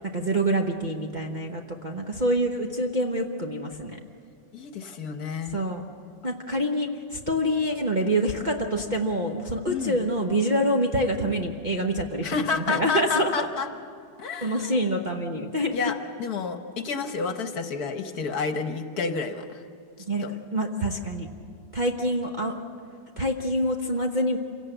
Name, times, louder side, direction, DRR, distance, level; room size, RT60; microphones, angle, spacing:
voice 1, 0.1-3.9 5.5-5.8 6.2-13.5 14.4-15.9 20.1-20.2 20.5-21.3 21.7-22.5 23.2-24.4, equal, 30° right, 0 dB, 0.9 m, -26 dB
voice 2, 4.5-5.6 9.7-10.0 12.2-13.7 14.2-14.8 15.7-19.6 20.2-20.3, left 5 dB, 60° left, 7 dB, 1.5 m, -30 dB
27.0 x 17.5 x 7.9 m, 2.4 s
omnidirectional pair, 2.0 m